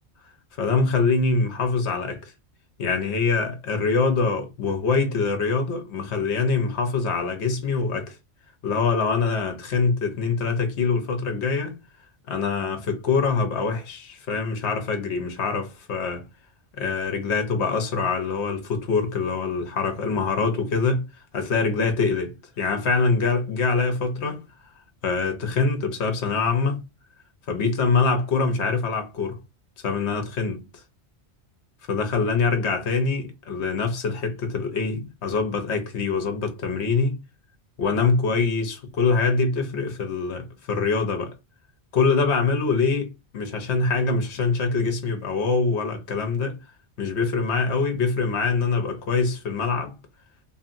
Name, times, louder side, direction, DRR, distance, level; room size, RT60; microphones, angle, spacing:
voice 1, 0.6-2.3 2.8-8.2 8.6-11.8 12.3-16.3 16.8-21.1 21.3-24.4 25.0-26.8 27.5-29.4 29.8-30.7 31.9-37.2 37.8-41.3 41.9-46.6 47.0-49.9, left 4 dB, 75° left, 1.1 m, -24 dB
2.8 x 2.7 x 2.5 m
omnidirectional pair, 1.2 m